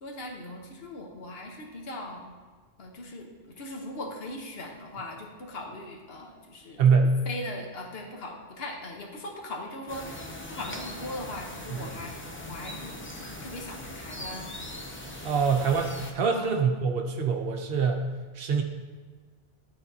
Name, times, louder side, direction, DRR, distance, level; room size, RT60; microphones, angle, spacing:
voice 1, 0.0-2.3 2.8-6.8 7.3-14.5 16.3-16.6, left 1 dB, 65° left, 1 dB, 1.2 m, -40 dB
voice 2, 6.8-7.2 11.7-11.8 15.2-18.1 18.3-18.6, right 5 dB, 65° right, 4 dB, 0.9 m, -24 dB
sound 1, 9.9-16.1, left 1 dB, 15° left, 0.4 m, -40 dB
11.5 x 4.0 x 2.7 m, 1.4 s
omnidirectional pair, 1.1 m